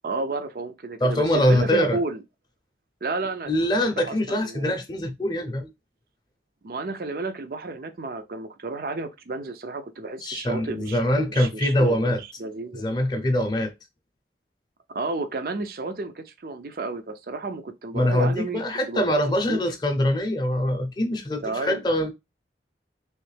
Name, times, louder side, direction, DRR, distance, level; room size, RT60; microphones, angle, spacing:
voice 1, 0.0-2.2 3.0-3.5 3.8-4.8 6.6-12.8 14.9-19.2 19.5-19.6 21.4-21.8, right 3 dB, 55° right, 0.5 m, -32 dB
voice 2, 1.0-2.0 3.5-5.7 10.2-12.2 12.7-13.7 17.9-22.1, left 1 dB, 25° left, 0.6 m, -23 dB
3.2 x 3.0 x 3.2 m
head